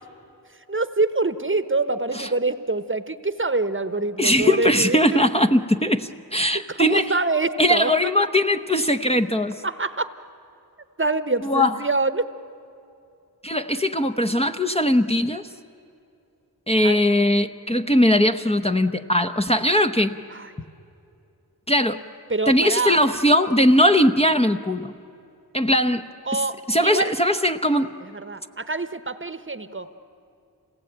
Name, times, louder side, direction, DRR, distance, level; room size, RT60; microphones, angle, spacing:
voice 1, 0.7-5.2 6.5-7.9 8.2-8.3 9.6-10.1 11.0-12.2 16.8-17.0 20.3-20.5 22.3-23.0 26.2-27.1 28.0-30.0, right 3 dB, 30° right, 11 dB, 1.1 m, -25 dB
voice 2, 4.2-7.0 7.6-9.6 11.4-11.7 13.4-15.5 16.7-20.2 21.7-22.0 22.5-24.9 25.5-26.0 26.3-26.4 26.7-27.9, left 1 dB, 15° left, 6 dB, 0.9 m, -20 dB
27.0 x 18.5 x 8.8 m, 2.7 s
cardioid pair, 45°, 39 cm